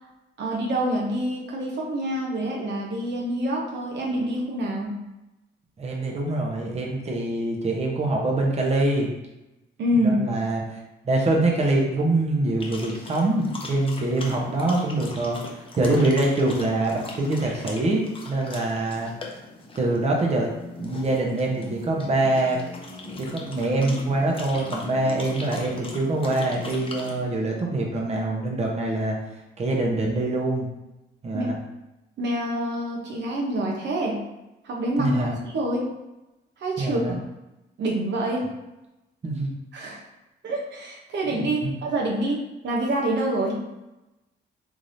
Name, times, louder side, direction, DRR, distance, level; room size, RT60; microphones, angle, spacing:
voice 1, 0.4-5.0 9.8-10.2 31.3-31.5 32.2-34.2 34.6-35.9 36.6-37.2 37.8-38.5 39.7-40.0 40.4-43.6, right 1 dB, 65° right, -2 dB, 0.8 m, -26 dB
voice 2, 5.8-9.1 9.9-10.8 11.0-19.1 19.7-20.5 20.8-22.6 23.2-29.2 29.6-30.7 31.2-31.6 35.0-35.4 36.8-37.2 39.2-39.5 41.3-41.7, right 2 dB, 35° right, -1 dB, 0.9 m, -24 dB
sound 1, 12.6-27.3, left 2 dB, 25° left, 0.7 m, -39 dB
3.6 x 3.2 x 2.7 m, 0.97 s
cardioid pair, 90°, 20 cm